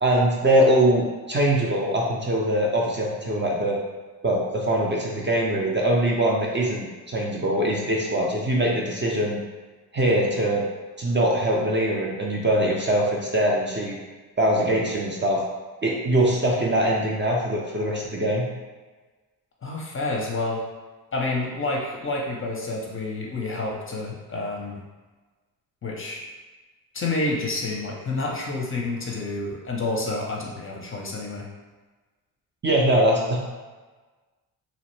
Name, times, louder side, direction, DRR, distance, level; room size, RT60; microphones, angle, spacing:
voice 1, 0.0-3.8 4.2-9.4 9.9-10.6 11.0-14.0 14.4-15.4 15.8-18.4 32.6-33.4, right 1 dB, 30° right, -3 dB, 0.4 m, -22 dB
voice 2, 19.6-20.6 21.1-24.8 25.8-26.2 26.9-31.5, left 2 dB, 30° left, -2 dB, 0.5 m, -29 dB
2.8 x 2.1 x 3.0 m, 1.3 s
cardioid pair, 95°, 40 cm